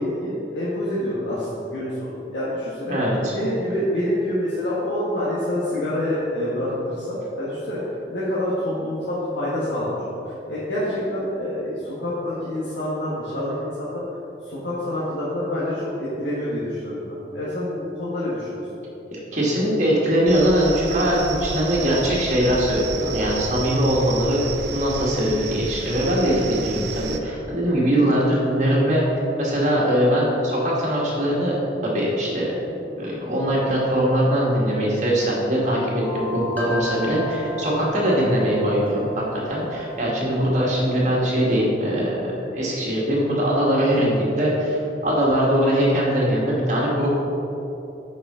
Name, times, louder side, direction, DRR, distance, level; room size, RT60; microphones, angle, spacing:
voice 1, 0.0-2.9 3.3-14.0 14.4-17.0 17.2-18.6, left 1 dB, 85° left, -9 dB, 1.5 m, -27 dB
voice 2, 2.9-3.3 19.1-24.4 24.7-29.0 29.4-31.5 31.8-32.6 33.0-47.2, equal, 40° right, -4 dB, 1.7 m, -21 dB
sound 1, 20.3-27.2, right 5 dB, 75° right, 0.5 m, -32 dB
Wind chimes, 36.0-41.3, equal, 10° left, 0.8 m, -34 dB
9.4 x 5.1 x 3.7 m, 3.0 s
head